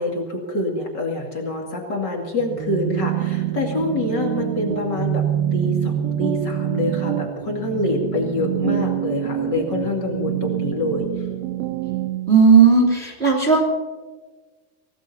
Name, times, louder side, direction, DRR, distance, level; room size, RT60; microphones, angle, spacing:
voice 1, 0.0-5.3 5.5-11.1, left 2 dB, 35° left, 0 dB, 2.3 m, -26 dB
sound 1, 2.4-12.3, right 12 dB, 80° right, 2.6 m, -26 dB
voice 2, 12.3-13.6, right 5 dB, 20° right, -1 dB, 2.5 m, -14 dB
25.0 x 18.5 x 2.8 m, 1.4 s
omnidirectional pair, 4.5 m